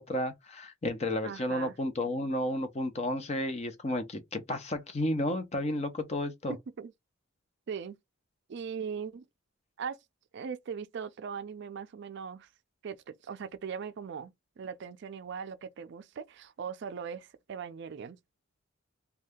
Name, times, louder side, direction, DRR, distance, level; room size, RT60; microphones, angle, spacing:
voice 1, 0.0-6.5, left 1 dB, 30° left, 0.6 m, -32 dB
voice 2, 1.2-1.7 6.5-6.9 7.7-8.0 8.5-9.2 9.8-10.0 10.3-12.5 12.8-18.2, right 6 dB, 55° right, 0.4 m, -40 dB
2.7 x 2.3 x 3.4 m
head